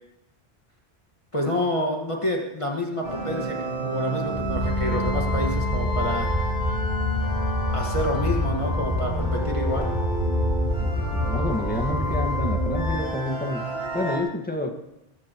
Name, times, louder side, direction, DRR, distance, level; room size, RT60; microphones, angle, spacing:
voice 1, 1.3-6.3 7.7-9.9, left 1 dB, 30° left, -1 dB, 1.8 m, -28 dB
sound 1, 3.0-14.2, right 1 dB, 55° left, 6.1 m, -30 dB
sound 2, 4.3-12.9, left 1 dB, 25° right, 4.2 m, -27 dB
voice 2, 10.8-14.7, left 2 dB, 10° left, 2 dB, 1.6 m, -29 dB
23.0 x 15.0 x 3.1 m, 0.92 s
omnidirectional pair, 1.1 m